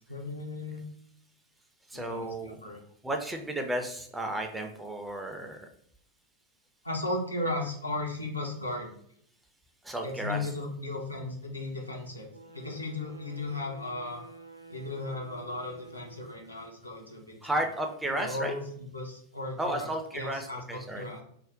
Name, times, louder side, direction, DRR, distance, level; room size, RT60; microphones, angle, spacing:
voice 1, 0.1-0.9 1.9-2.8 6.8-8.9 10.0-14.2 14.7-17.4 18.2-21.2, left 2 dB, 85° left, 0 dB, 0.6 m, -36 dB
voice 2, 1.9-2.6 3.0-5.7 9.8-10.5 17.4-18.6 19.6-21.1, right 1 dB, 5° right, 4 dB, 0.4 m, -33 dB
sound 1, 12.3-16.8, right 3 dB, 90° right, 0.3 m, -49 dB
2.5 x 2.0 x 3.6 m, 0.67 s
figure-of-eight pair, 90°, 0 cm